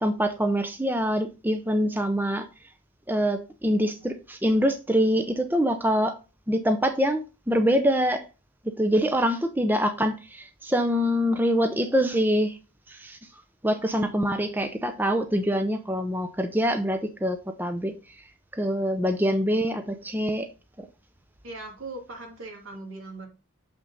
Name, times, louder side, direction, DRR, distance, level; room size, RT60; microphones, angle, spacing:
voice 1, 0.0-2.5 3.1-6.2 6.5-8.2 8.6-12.6 12.9-13.2 13.6-18.2 18.5-20.5 20.8-20.9, equal, 10° right, 7 dB, 0.6 m, -25 dB
voice 2, 21.4-23.3, right 2 dB, 75° right, 1 dB, 2.5 m, -39 dB
6.7 x 6.0 x 3.9 m, 0.31 s
head